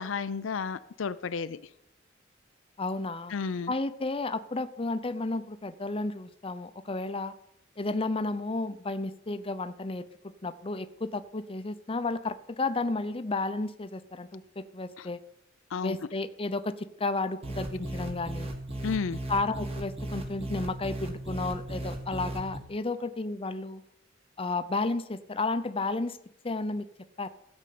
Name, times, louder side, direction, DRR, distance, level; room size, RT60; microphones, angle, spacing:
voice 1, 0.0-1.6 3.3-3.7 15.0-15.1 15.7-16.0 18.8-19.2, left 5 dB, 80° left, 0.5 m, -32 dB
voice 2, 2.8-3.3 3.7-7.3 7.8-10.0 10.4-15.2 15.8-18.5 19.3-23.8 24.4-26.2 26.4-26.9 27.2-27.3, left 3 dB, 30° left, 0.7 m, -32 dB
sound 1, 17.4-22.6, right 1 dB, 30° right, 1.8 m, -36 dB
15.0 x 5.3 x 8.5 m
head